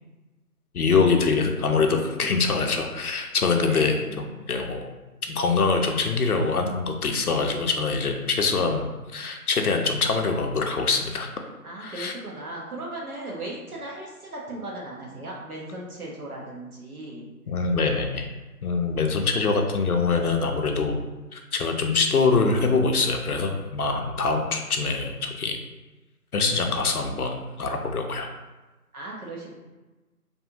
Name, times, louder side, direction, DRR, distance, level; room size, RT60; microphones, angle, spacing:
voice 1, 0.7-4.8 5.3-11.3 11.8-12.1 17.5-18.3 18.6-21.0 21.3-25.6 26.3-28.3, left 4 dB, 70° left, 3 dB, 0.5 m, -24 dB
voice 2, 3.7-4.2 11.6-17.3 28.9-29.5, right 2 dB, 65° right, -3 dB, 1.0 m, -37 dB
2.6 x 2.3 x 2.7 m, 1.1 s
figure-of-eight pair, 170°, 47 cm